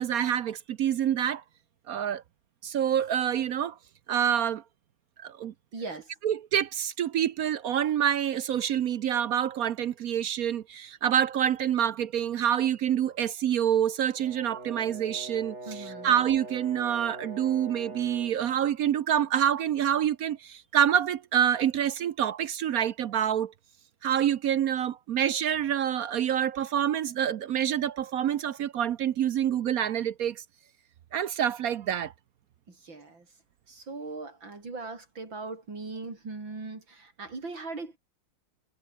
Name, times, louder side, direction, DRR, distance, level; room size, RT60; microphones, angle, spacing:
voice 1, 0.0-1.4 1.9-2.2 2.6-3.8 4.1-4.6 5.2-5.5 6.2-23.5 24.0-30.4 31.1-32.1, right 9 dB, 65° right, 1.0 m, -27 dB
voice 2, 5.7-6.1 15.7-16.1 32.7-33.3 33.7-38.0, right 3 dB, 80° right, 5.7 m, -39 dB
Brass instrument, 14.2-18.4, right 2 dB, 35° right, 4.7 m, -42 dB
omnidirectional pair, 2.1 m